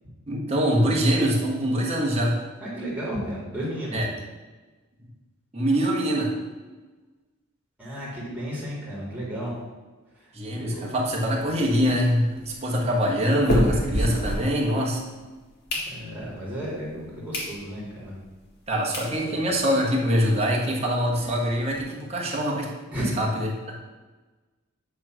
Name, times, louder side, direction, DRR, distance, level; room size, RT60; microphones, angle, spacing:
voice 1, 0.3-2.4 3.9-4.1 5.5-6.3 10.3-15.0 18.7-22.7 23.2-23.8, equal, 30° right, -2 dB, 1.3 m, -24 dB
voice 2, 2.6-4.0 7.8-9.6 10.1-10.3 10.6-10.9 15.9-18.2 19.0-19.4 22.9-23.2, equal, 5° right, -7 dB, 2.4 m, -33 dB
sound 1, 11.1-15.0 15.4-16.4 16.9-17.0 17.3-17.5 18.0-18.1 18.6-18.7 18.9-19.1 19.6-19.7 19.8-20.0 20.2-20.3 20.7-21.8, equal, 50° left, 1.6 m, -30 dB
8.6 x 3.2 x 6.0 m, 1.3 s
head